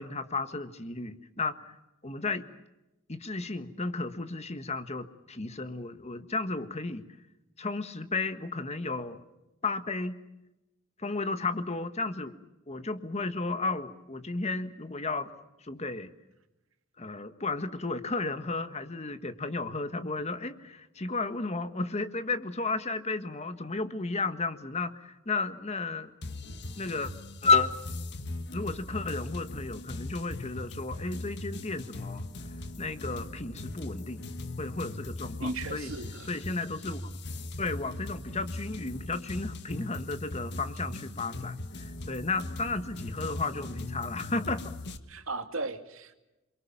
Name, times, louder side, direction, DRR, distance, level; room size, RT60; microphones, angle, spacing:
voice 1, 0.0-1.7 2.0-2.4 3.1-7.0 7.6-9.2 9.6-10.2 11.0-12.4 12.7-15.3 15.6-16.1 17.0-26.1 26.8-27.1 27.4-27.8 28.5-32.2 32.8-34.3 34.6-35.9 36.3-37.0 37.6-44.7, left 3 dB, 30° left, 10 dB, 1.5 m, -33 dB
sound 1, 26.2-45.0, left 2 dB, 55° left, 1.7 m, -39 dB
voice 2, 35.4-36.3 45.1-46.2, right 2 dB, 70° right, 7 dB, 2.4 m, -36 dB
28.5 x 23.0 x 7.3 m, 0.96 s
head